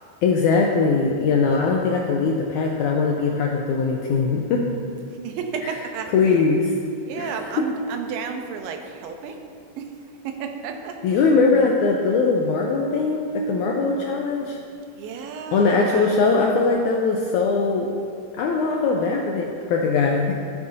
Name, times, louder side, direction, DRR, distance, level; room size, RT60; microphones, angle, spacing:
voice 1, 0.2-4.7 6.1-6.7 7.2-7.3 11.0-14.6 15.5-17.9 18.3-20.3, left 4 dB, 85° left, 0 dB, 1.7 m, -21 dB
voice 2, 5.1-6.1 7.0-9.4 9.8-10.0 10.2-11.3 15.0-16.2, right 6 dB, 85° right, 5 dB, 2.4 m, -32 dB
14.5 x 7.0 x 2.7 m, 2.6 s
omnidirectional pair, 4.0 m